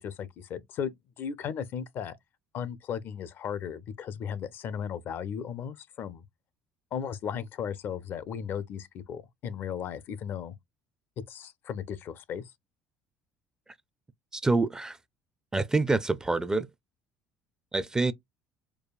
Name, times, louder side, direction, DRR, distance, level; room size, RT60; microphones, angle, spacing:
voice 1, 0.0-2.1 2.5-6.2 6.9-10.5 11.3-12.5, left 8 dB, 50° left, 0.5 m, -36 dB
voice 2, 14.3-15.0 15.5-16.7 17.7-18.1, right 3 dB, 15° right, 0.4 m, -26 dB
4.7 x 2.2 x 2.3 m
figure-of-eight pair, 60°, 5 cm